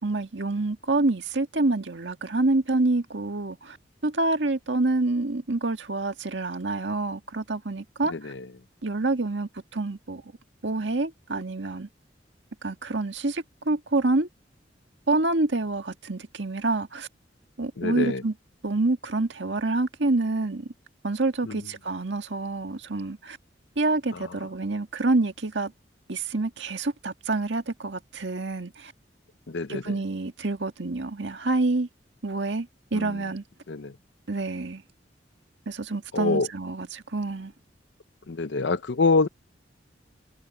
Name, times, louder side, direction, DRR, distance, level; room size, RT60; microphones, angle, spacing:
voice 1, 0.0-3.8 4.0-8.3 8.8-10.2 10.6-11.9 12.6-14.3 15.1-17.1 17.6-18.3 18.6-20.7 21.0-23.4 23.8-25.7 26.1-28.9 29.7-31.9 32.2-33.4 34.3-34.8 35.7-37.5, right 2 dB, 75° right, 1.7 m, -27 dB
voice 2, 8.1-8.5 17.8-18.2 21.5-21.6 29.5-29.8 32.9-33.2 33.7-33.9 36.1-36.5 38.3-39.3, left 3 dB, 70° left, 0.7 m, -25 dB
head